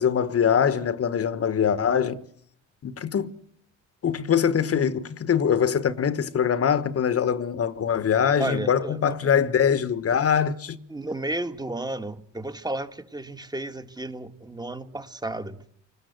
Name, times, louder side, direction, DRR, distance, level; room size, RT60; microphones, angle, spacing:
voice 1, 0.0-2.2 2.8-3.3 4.0-10.8, left 7 dB, 50° left, 1.3 m, -23 dB
voice 2, 8.4-9.4 10.9-15.6, right 2 dB, 15° right, 1.8 m, -33 dB
29.0 x 19.5 x 8.0 m
cardioid pair, 90°, 30 cm